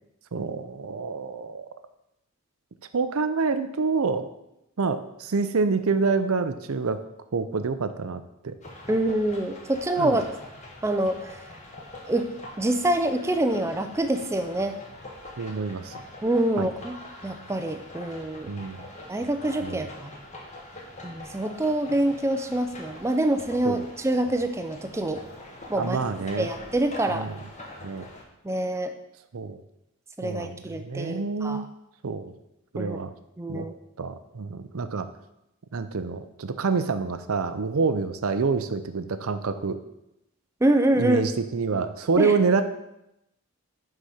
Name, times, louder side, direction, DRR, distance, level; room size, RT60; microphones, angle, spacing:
voice 1, 0.3-1.7 2.9-4.3 4.8-7.0 7.3-8.6 10.0-10.2 15.4-15.9 16.6-16.7 18.5-18.8 19.6-19.8 23.6-23.9 25.7-26.5 27.1-27.4 27.8-28.1 29.3-29.6 30.2-31.7 32.0-32.3 32.7-33.1 33.5-33.7 34.0-35.1 35.7-39.8 41.0-42.6, right 4 dB, 70° right, 10 dB, 0.6 m, -27 dB
sound 1, 8.6-28.2, left 1 dB, 30° left, 1.1 m, -44 dB
voice 2, 8.9-10.2 10.8-11.4 12.1-12.3 12.6-14.8 16.2-17.0 17.2-18.5 19.1-20.1 21.0-25.2 25.7-26.0 26.4-27.3 28.4-28.9 30.2-31.7 32.8-33.0 33.4-33.8 40.6-41.2 42.2-42.3, right 1 dB, 10° right, 7 dB, 0.4 m, -26 dB
6.5 x 4.9 x 5.6 m, 0.86 s
head